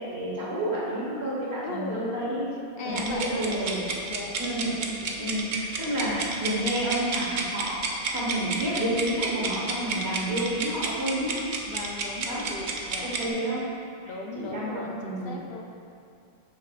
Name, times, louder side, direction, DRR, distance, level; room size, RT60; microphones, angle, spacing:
voice 1, 0.0-2.5 2.8-3.8 4.4-4.9 5.2-11.4 12.3-12.5 13.0-13.7 14.0-15.4, right 1 dB, 80° right, -6 dB, 1.8 m, -30 dB
voice 2, 1.6-2.2 2.8-4.4 4.8-5.2 11.7-13.2 14.0-15.6, left 3 dB, 65° left, 0 dB, 0.8 m, -37 dB
sound 1, 2.9-13.3, right 3 dB, 55° right, 0.7 m, -31 dB
7.6 x 5.9 x 2.5 m, 2.5 s
omnidirectional pair, 1.1 m